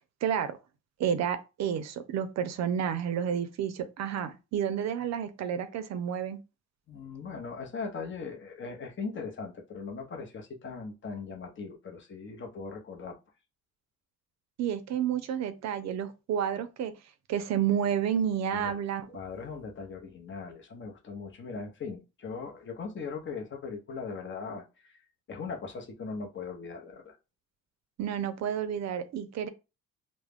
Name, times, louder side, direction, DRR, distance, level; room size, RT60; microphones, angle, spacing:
voice 1, 0.2-0.6 1.0-6.4 14.6-16.9 17.3-19.1 28.0-29.5, right 8 dB, 60° right, 0.5 m, -30 dB
voice 2, 6.9-13.2 18.6-18.8 19.1-25.0 25.3-27.2, left 5 dB, 40° left, 0.7 m, -39 dB
2.3 x 2.0 x 3.4 m
cardioid pair, 90°, 30 cm